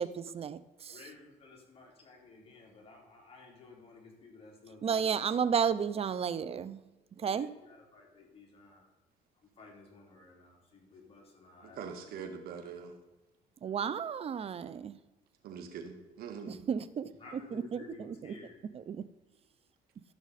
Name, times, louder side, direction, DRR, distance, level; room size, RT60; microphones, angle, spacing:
voice 1, 0.0-0.9 4.8-6.8 7.2-7.5 13.6-15.0 16.5-17.1 17.5-18.3 18.9-19.0, right 7 dB, 40° right, 15 dB, 0.6 m, -32 dB
voice 2, 0.9-5.4 7.2-8.9 9.4-12.2 12.7-12.8 17.1-18.6, left 3 dB, 40° left, -1 dB, 3.1 m, -54 dB
voice 3, 11.8-12.9 15.4-16.6, right 6 dB, 75° right, 5 dB, 1.7 m, -43 dB
14.0 x 6.1 x 4.2 m, 1.1 s
cardioid pair, 100°, 16 cm